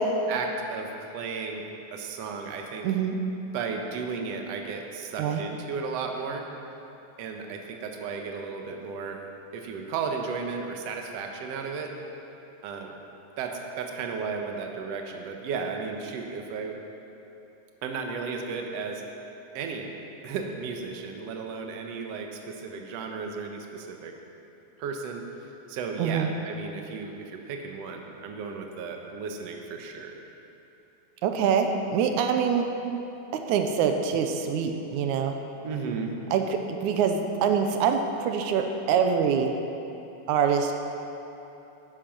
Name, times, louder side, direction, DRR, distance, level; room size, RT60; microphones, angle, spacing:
voice 1, 0.3-1.6 1.9-2.9 3.5-6.5 7.2-9.2 9.5-11.9 12.6-12.9 13.4-16.8 17.8-19.0 19.6-19.9 20.2-24.1 24.8-25.3 25.7-30.2 35.6-36.2, right 5 dB, 65° right, 2 dB, 2.0 m, -34 dB
voice 2, 2.8-3.2 5.2-5.4 26.0-26.3 31.2-32.7 33.3-35.3 36.3-39.6 40.3-40.7, right 7 dB, 90° right, 5 dB, 2.2 m, -25 dB
13.0 x 10.0 x 6.0 m, 2.9 s
omnidirectional pair, 3.3 m